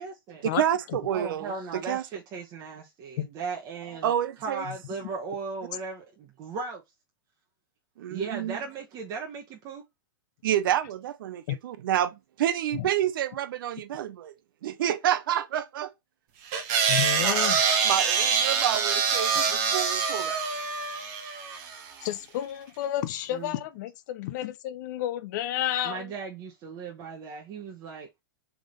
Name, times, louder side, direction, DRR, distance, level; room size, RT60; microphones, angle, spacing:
voice 1, 0.0-0.4 1.1-4.1 4.4-6.8 8.1-9.8 23.3-23.6 25.8-28.1, right 4 dB, 30° right, 1.0 m, -37 dB
voice 2, 0.5-2.0 4.0-4.6 8.0-8.6 10.4-14.3 14.6-15.9 17.2-17.4 17.8-20.4, right 11 dB, 70° right, 0.7 m, -28 dB
sound 1, 16.5-21.9, right 6 dB, 45° right, 1.2 m, -25 dB
voice 3, 16.9-17.6 22.0-26.1, left 13 dB, 50° left, 0.6 m, -31 dB
3.6 x 3.5 x 3.7 m
hypercardioid pair, 140°, 12 cm